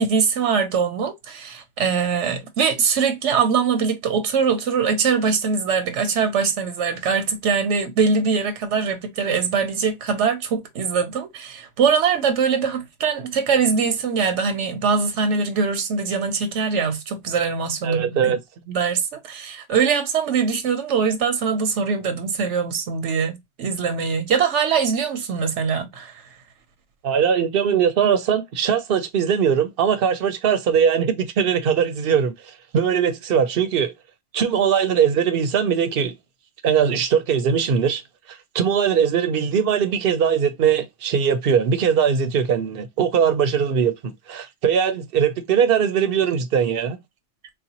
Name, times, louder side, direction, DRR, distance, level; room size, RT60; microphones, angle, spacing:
voice 1, 0.0-18.3 18.7-26.2, right 6 dB, 85° right, 1.0 m, -22 dB
voice 2, 17.8-18.4 27.0-32.3 32.7-33.9 34.3-36.1 36.6-38.0 38.3-47.0, right 7 dB, 60° right, 0.8 m, -20 dB
4.0 x 2.2 x 2.8 m
omnidirectional pair, 1.2 m